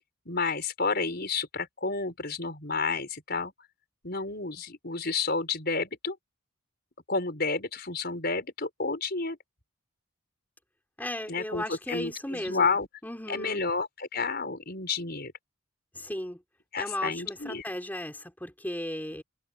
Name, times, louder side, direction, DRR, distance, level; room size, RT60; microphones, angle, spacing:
voice 1, 0.3-3.5 4.0-6.2 7.1-9.4 11.3-12.9 13.3-15.3 16.7-17.7, left 4 dB, 45° left, 5.4 m, -30 dB
voice 2, 11.0-12.7 13.0-13.6 15.9-16.4 16.8-19.2, left 1 dB, 10° left, 4.9 m, -36 dB
head